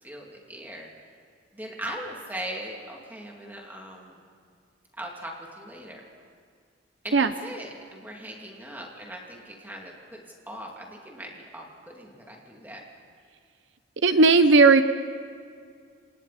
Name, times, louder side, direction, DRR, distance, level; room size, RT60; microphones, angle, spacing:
voice 1, 0.0-0.9 1.5-4.2 5.0-6.0 7.0-12.8, right 1 dB, 10° right, -1 dB, 2.7 m, -40 dB
voice 2, 14.0-14.8, right 3 dB, 70° right, 10 dB, 0.7 m, -16 dB
28.5 x 27.0 x 4.3 m, 2.2 s
head